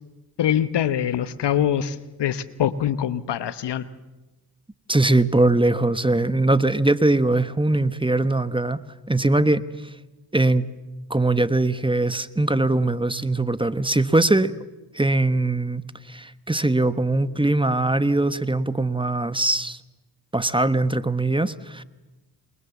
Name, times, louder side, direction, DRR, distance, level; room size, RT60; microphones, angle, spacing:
voice 1, 0.4-3.8, left 10 dB, 80° left, 14 dB, 1.1 m, -24 dB
voice 2, 4.9-8.8 9.1-9.6 10.3-10.7 11.1-14.5 14.9-19.8 20.3-21.8, right 2 dB, 10° right, 13 dB, 1.2 m, -21 dB
28.0 x 22.5 x 7.2 m, 1.1 s
cardioid pair, 50°, 41 cm